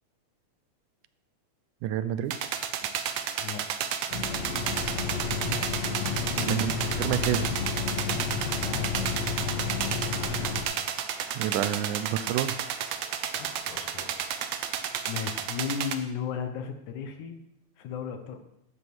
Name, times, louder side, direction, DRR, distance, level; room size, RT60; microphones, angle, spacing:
voice 1, 1.8-2.3 6.4-7.5 11.3-12.6, right 10 dB, 85° right, 14 dB, 2.2 m, -29 dB
sound 1, 2.3-16.0, right 8 dB, 70° right, 1.8 m, -32 dB
voice 2, 3.4-3.9 6.4-6.6 8.6-9.0 13.3-14.1 15.1-17.4 17.8-18.4, left 7 dB, 75° left, 7 dB, 2.6 m, -35 dB
sound 2, 4.1-10.6, left 5 dB, 60° left, 3.5 m, -31 dB
12.5 x 8.2 x 6.1 m, 0.81 s
omnidirectional pair, 3.5 m